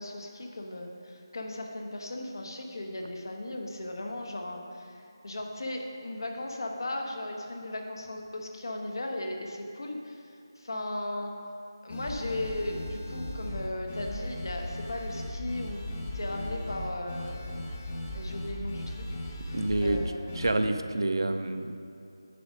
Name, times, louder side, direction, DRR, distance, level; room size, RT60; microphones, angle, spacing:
voice 1, 0.0-4.9 5.2-11.3 11.8-15.8 16.1-17.6 18.1-20.3, left 1 dB, 65° left, 2 dB, 1.1 m, -37 dB
sound 1, 11.9-20.5, left 1 dB, 20° left, 0.7 m, -37 dB
voice 2, 19.5-20.0 20.4-21.7, right 2 dB, 75° right, 8 dB, 0.6 m, -27 dB
9.7 x 5.2 x 5.0 m, 2.6 s
figure-of-eight pair, 170°, 2 cm